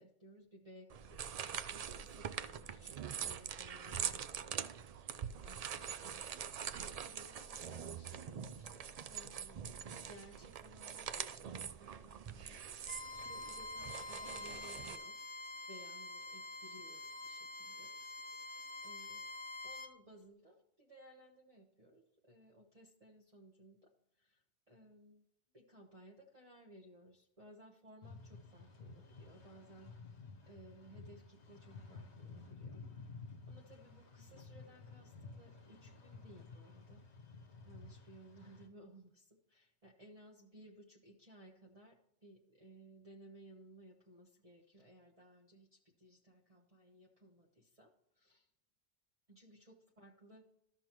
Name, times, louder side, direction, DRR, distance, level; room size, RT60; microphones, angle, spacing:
voice 1, 0.0-5.2 5.4-15.2 15.7-17.9 18.4-19.3 19.6-25.2 25.5-29.9 30.5-33.1 33.5-37.0 37.6-48.5 49.3-50.5, right 1 dB, 35° right, -1 dB, 1.0 m, -60 dB
sound 1, 0.9-15.0, right 8 dB, 65° right, 0.4 m, -44 dB
Bowed string instrument, 12.8-19.9, left 2 dB, 35° left, 0.6 m, -47 dB
sound 2, 28.0-38.7, left 4 dB, 70° left, 1.3 m, -53 dB
13.5 x 6.0 x 3.0 m, 0.76 s
omnidirectional pair, 1.2 m